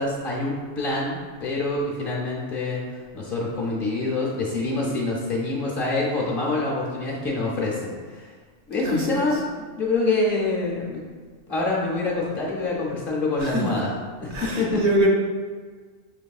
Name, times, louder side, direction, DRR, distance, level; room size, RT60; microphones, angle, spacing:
voice 1, 0.0-8.3 8.7-11.0 11.5-13.9 14.2-14.8, left 2 dB, 55° left, -3 dB, 0.7 m, -26 dB
voice 2, 8.8-9.3 13.4-13.7 14.3-15.1, right 1 dB, 60° right, -3 dB, 1.0 m, -24 dB
5.9 x 3.0 x 2.3 m, 1.5 s
omnidirectional pair, 1.3 m